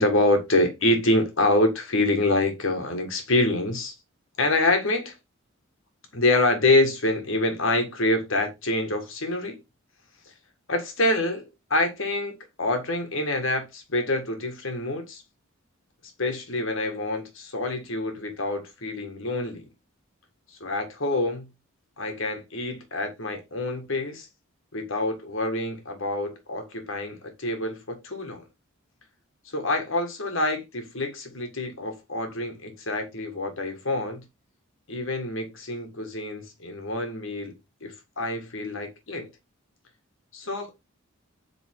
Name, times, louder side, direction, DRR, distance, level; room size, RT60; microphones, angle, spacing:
voice 1, 0.0-3.9 4.4-5.1 6.1-9.6 10.7-15.2 16.2-19.6 20.6-21.5 22.0-24.3 24.7-28.4 29.5-34.2 34.9-37.5 37.8-39.3 40.3-40.7, left 2 dB, 65° left, 1.7 m, -26 dB
7.7 x 3.8 x 3.6 m
head